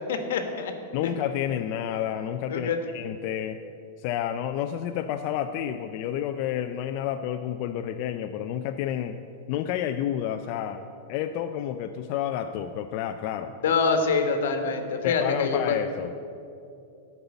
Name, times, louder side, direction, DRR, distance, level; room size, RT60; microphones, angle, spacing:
voice 1, 0.1-0.7 2.5-2.8 13.6-15.8, left 4 dB, 80° left, 6 dB, 1.2 m, -25 dB
voice 2, 0.9-3.6 4.0-9.2 9.5-13.6 15.0-16.2, left 10 dB, 45° left, 6 dB, 0.4 m, -30 dB
12.5 x 5.5 x 7.0 m, 2.6 s
supercardioid pair, 150°, 0 cm